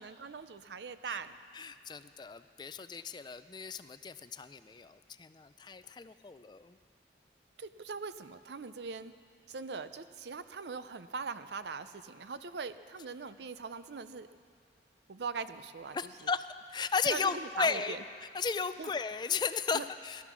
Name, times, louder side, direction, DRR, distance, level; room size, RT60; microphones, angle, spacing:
voice 1, 0.0-1.3 7.6-9.1 9.5-14.3 15.1-16.3 17.1-18.0 18.8-18.9 19.7-19.8, right 5 dB, 75° right, 12 dB, 0.6 m, -41 dB
voice 2, 1.5-6.8 15.9-20.2, left 5 dB, 25° left, 12 dB, 0.4 m, -35 dB
17.5 x 12.0 x 6.2 m, 2.2 s
head